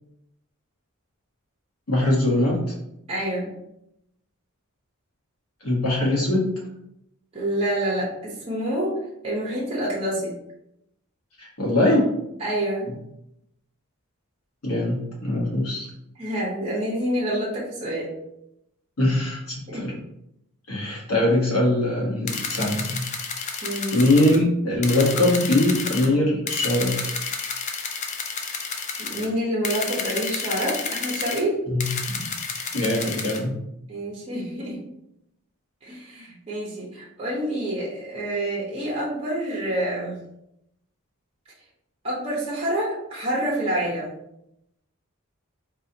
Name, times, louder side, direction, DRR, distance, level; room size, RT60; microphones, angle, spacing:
voice 1, 1.9-2.6 5.6-6.5 11.4-12.1 14.6-15.9 19.0-19.9 20.7-23.0 23.9-27.0 31.7-32.2 32.7-33.5, left 1 dB, 85° left, -3 dB, 1.2 m, -22 dB
voice 2, 3.1-3.5 7.3-9.0 9.2-10.3 12.4-12.9 16.1-18.1 19.7-19.9 23.6-24.0 29.0-31.6 33.9-34.8 35.8-40.2 42.0-44.1, right 1 dB, 25° right, -5 dB, 0.8 m, -27 dB
sound 1, 22.3-24.4 24.8-26.1 26.5-29.3 29.6-31.4 31.8-33.4, left 5 dB, 35° left, 0.3 m, -30 dB
4.0 x 2.8 x 2.7 m, 0.82 s
head